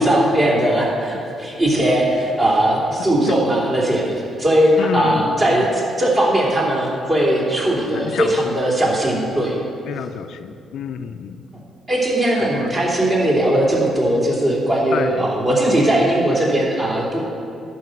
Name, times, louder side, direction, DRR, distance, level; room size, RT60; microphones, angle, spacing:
voice 1, 0.0-9.6 11.9-17.2, right 1 dB, 30° right, -4 dB, 3.0 m, -19 dB
voice 2, 3.0-3.4 4.8-5.7 7.9-8.6 9.9-11.4 12.4-12.7 14.9-15.3, left 7 dB, 75° left, 9 dB, 0.4 m, -29 dB
11.0 x 5.5 x 7.8 m, 2.6 s
cardioid pair, 90°, 0 cm